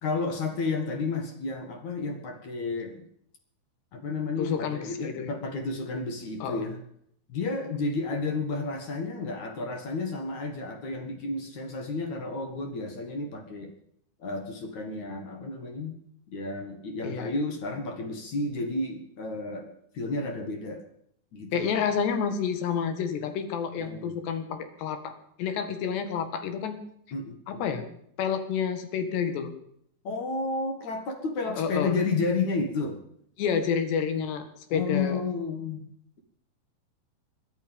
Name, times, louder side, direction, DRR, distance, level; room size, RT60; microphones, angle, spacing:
voice 1, 0.0-3.0 3.9-6.8 7.3-13.7 14.2-15.9 16.3-20.8 21.3-21.7 23.7-24.2 27.1-27.7 30.0-33.0 34.7-35.9, left 3 dB, 50° left, 6 dB, 2.8 m, -31 dB
voice 2, 4.4-5.3 6.4-6.6 17.0-17.3 21.5-26.8 27.5-27.8 28.2-29.5 31.6-32.0 33.4-35.2, left 7 dB, 90° left, 9 dB, 4.0 m, -29 dB
22.0 x 11.5 x 5.4 m, 0.68 s
omnidirectional pair, 4.7 m